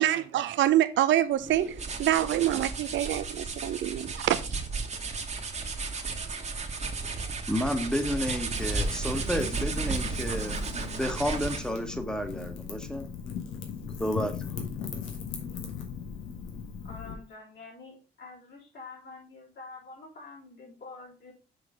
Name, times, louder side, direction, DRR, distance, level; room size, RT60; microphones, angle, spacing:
voice 1, 0.0-4.4, right 12 dB, 70° right, 12 dB, 0.6 m, -26 dB
sound 1, 1.4-11.8, right 4 dB, 35° right, 1.4 m, -34 dB
voice 2, 7.5-13.1 14.0-14.4, equal, 5° left, 7 dB, 1.3 m, -31 dB
Wind / Fire, 8.6-17.1, left 6 dB, 90° left, 1.7 m, -38 dB
voice 3, 16.8-21.3, left 3 dB, 60° left, -3 dB, 3.8 m, -47 dB
6.7 x 4.3 x 5.1 m, 0.36 s
cardioid pair, 90°, 20 cm